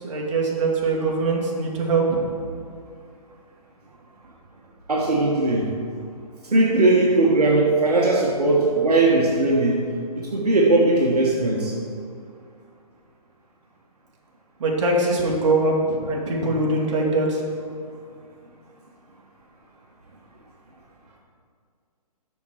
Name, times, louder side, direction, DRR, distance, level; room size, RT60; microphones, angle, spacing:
voice 1, 0.0-2.2 14.6-17.4, right 2 dB, 50° right, -2 dB, 2.1 m, -22 dB
voice 2, 4.9-5.7 6.5-9.8 10.1-11.7, right 2 dB, 80° right, -2 dB, 1.4 m, -19 dB
6.9 x 6.1 x 6.5 m, 2.2 s
figure-of-eight pair, 135°, 20 cm